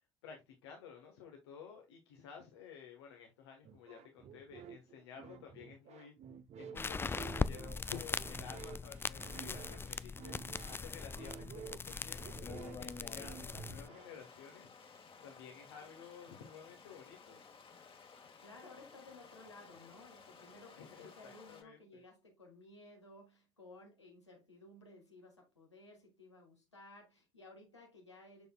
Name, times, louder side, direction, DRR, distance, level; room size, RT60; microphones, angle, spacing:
voice 1, 0.2-6.1 6.6-10.3 10.7-14.7 15.2-17.4 20.8-22.0, left 7 dB, 75° left, 1.4 m, -53 dB
sound 1, 3.6-14.2, right 7 dB, 50° right, 0.8 m, -51 dB
sound 2, 6.8-13.9, left 4 dB, 15° left, 0.3 m, -41 dB
voice 2, 11.1-12.1 18.4-28.5, left 2 dB, 90° left, 1.8 m, -57 dB
Stream, 12.0-21.6, left 5 dB, 40° left, 1.7 m, -55 dB
7.0 x 6.7 x 2.4 m
figure-of-eight pair, 50°, 14 cm